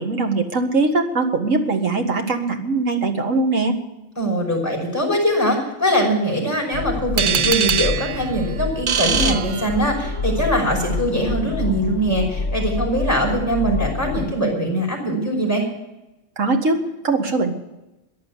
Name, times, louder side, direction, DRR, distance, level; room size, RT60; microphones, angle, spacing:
voice 1, 0.0-3.8 16.4-17.5, right 3 dB, 75° right, 4 dB, 2.2 m, -21 dB
voice 2, 4.2-15.7, equal, 10° left, -2 dB, 5.7 m, -22 dB
sound 1, 6.7-14.3, left 3 dB, 60° left, 1.8 m, -27 dB
sound 2, 7.2-10.2, right 7 dB, 50° right, 0.7 m, -23 dB
14.5 x 10.5 x 8.5 m, 0.97 s
omnidirectional pair, 1.4 m